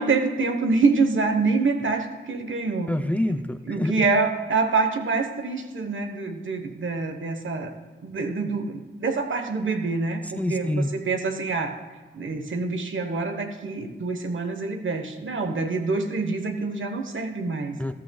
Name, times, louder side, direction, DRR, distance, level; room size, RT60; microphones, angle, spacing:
voice 1, 0.0-2.9 3.7-7.7 8.0-11.8 12.1-17.8, right 4 dB, 65° right, 6 dB, 1.2 m, -26 dB
voice 2, 2.9-4.1 10.3-10.9 17.8-17.9, left 1 dB, 5° left, 9 dB, 0.5 m, -26 dB
14.0 x 13.0 x 2.3 m, 1.4 s
cardioid pair, 70°, 21 cm